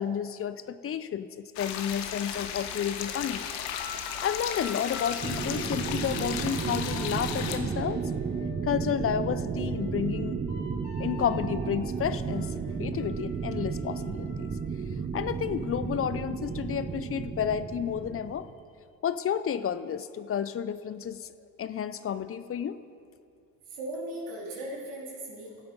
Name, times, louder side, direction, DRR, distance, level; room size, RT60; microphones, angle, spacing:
voice 1, 0.0-3.5 4.2-8.1 8.6-10.4 11.0-12.5 12.8-14.5 15.1-18.5 19.0-21.3 21.6-22.8, left 8 dB, 30° left, 13 dB, 0.5 m, -31 dB
sound 1, 1.6-7.6, left 9 dB, 75° left, 1.1 m, -35 dB
sound 2, 3.6-8.9 9.3-14.6, left 4 dB, 55° left, 2.5 m, -47 dB
sound 3, 5.2-18.5, right 5 dB, 20° right, 0.7 m, -33 dB
voice 2, 23.7-25.6, right 1 dB, 75° right, -5 dB, 3.1 m, -38 dB
15.0 x 7.9 x 5.2 m, 2.3 s
hypercardioid pair, 70°, 46 cm